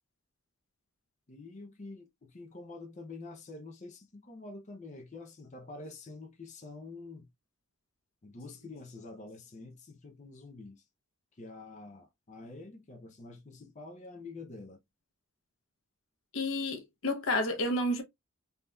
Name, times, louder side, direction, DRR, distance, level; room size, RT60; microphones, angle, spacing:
voice 1, 1.3-7.3 8.2-10.8 11.3-14.8, left 3 dB, 35° left, 0.6 m, -47 dB
voice 2, 16.3-18.0, left 1 dB, 80° left, 0.8 m, -30 dB
3.4 x 2.8 x 2.2 m
head